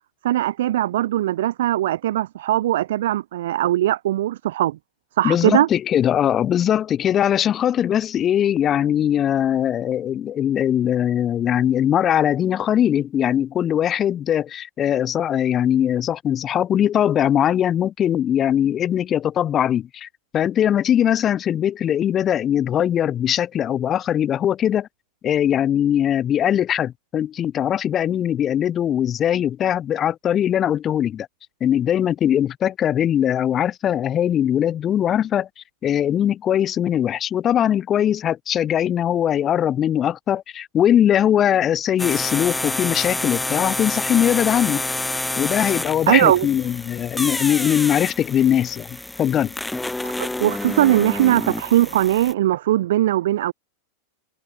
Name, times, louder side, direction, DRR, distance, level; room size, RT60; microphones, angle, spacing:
voice 1, 0.2-4.8 5.2-5.7 46.1-46.5 50.2-53.5, right 13 dB, 55° right, 3.2 m, -20 dB
voice 2, 5.2-24.9 25.2-31.3 31.6-44.8 45.4-49.5, left 10 dB, 25° left, 2.4 m, -21 dB
sound 1, 42.0-52.3, left 2 dB, 5° left, 4.3 m, -28 dB
figure-of-eight pair, 90°, 0 cm